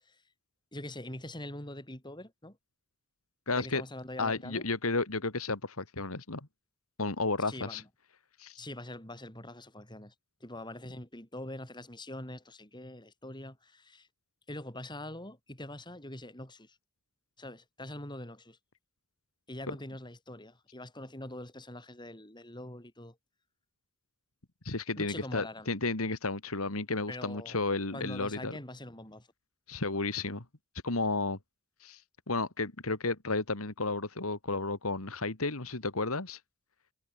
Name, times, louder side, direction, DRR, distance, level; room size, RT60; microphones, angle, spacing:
voice 1, 0.7-2.6 3.5-4.6 7.5-7.9 8.6-10.1 10.4-14.1 14.5-16.8 17.4-18.6 19.5-23.2 25.0-25.7 27.1-27.6 27.9-29.3, left 1 dB, 20° left, 7.2 m, -44 dB
voice 2, 3.5-3.8 4.2-6.5 7.0-7.8 8.4-8.6 19.7-19.8 24.6-28.6 29.7-30.4 30.8-31.4 31.8-32.0 32.3-36.4, left 3 dB, 85° left, 2.6 m, -32 dB
head